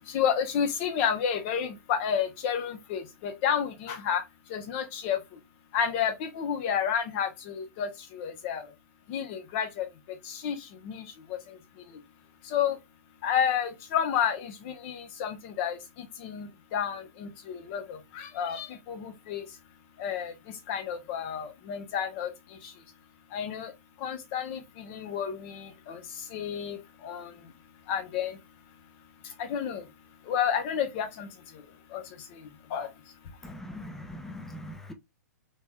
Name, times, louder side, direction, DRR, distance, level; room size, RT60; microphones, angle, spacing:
voice 1, 0.0-4.2 4.5-5.4 5.7-8.7 9.1-9.9 10.2-11.6 11.9-12.0 12.4-12.8 13.2-19.5 20.0-22.7 23.3-23.7 24.0-27.5 27.9-28.4 29.2-29.9 30.2-31.6 31.9-32.9, left 8 dB, 45° left, 0.8 m, -31 dB
voice 2, 33.4-34.9, left 1 dB, 5° left, 0.4 m, -41 dB
3.1 x 2.9 x 2.2 m
hypercardioid pair, 120°, 9 cm